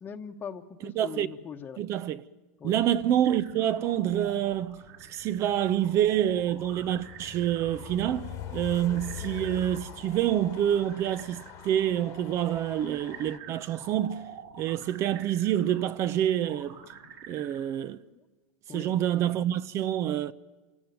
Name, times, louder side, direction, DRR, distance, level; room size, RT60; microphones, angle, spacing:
voice 1, 0.0-1.8 2.6-2.8 18.1-18.2 18.7-18.9, left 6 dB, 20° left, 1.2 m, -41 dB
voice 2, 0.8-1.3 1.8-2.2 2.6-4.8 5.1-14.2 14.6-16.8 17.3-18.0 18.7-20.3, right 11 dB, 40° right, 0.7 m, -27 dB
sound 1, 3.2-17.6, right 6 dB, 60° right, 5.6 m, -49 dB
Train, 5.0-13.4, left 10 dB, 40° left, 1.4 m, -44 dB
27.0 x 17.5 x 9.3 m
supercardioid pair, 140°, 8 cm